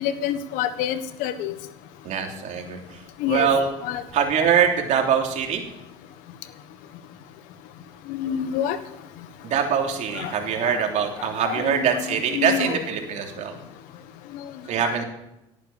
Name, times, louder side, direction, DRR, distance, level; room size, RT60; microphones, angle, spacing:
voice 1, 0.0-1.5 3.2-3.5 3.8-4.0 8.1-8.8 10.1-10.3 10.6-10.7 11.4-12.8 14.8-15.0, left 9 dB, 75° left, 12 dB, 1.3 m, -27 dB
voice 2, 2.0-3.0 3.3-3.7 4.1-5.6 9.4-13.6 14.7-15.0, right 7 dB, 60° right, 2 dB, 3.2 m, -23 dB
17.5 x 9.0 x 7.2 m, 0.92 s
supercardioid pair, 80°, 14 cm